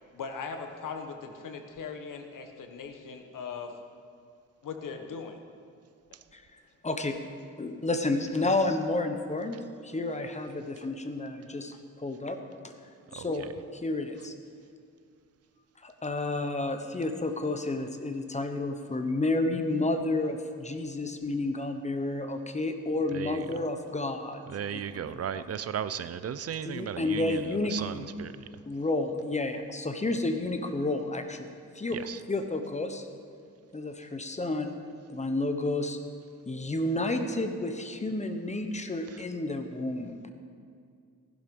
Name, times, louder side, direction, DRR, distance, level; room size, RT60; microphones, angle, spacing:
voice 1, 0.1-3.7 4.6-5.4, left 5 dB, 90° left, 6 dB, 1.3 m, -39 dB
voice 2, 6.3-7.2 7.6-12.4 12.6-12.7 13.1-13.5 13.7-14.3 15.8-24.4 24.7-24.8 26.7-28.1 28.7-31.5 31.7-32.0 32.3-33.1 33.7-34.7 35.1-36.0 36.5-40.2, left 2 dB, 20° left, 7 dB, 1.0 m, -31 dB
voice 3, 13.1-13.5 23.1-23.5 24.5-28.5 31.9-32.2 39.1-39.2, right 8 dB, 50° right, 14 dB, 0.6 m, -36 dB
15.5 x 11.5 x 5.4 m, 2.3 s
wide cardioid pair, 125°, 31 cm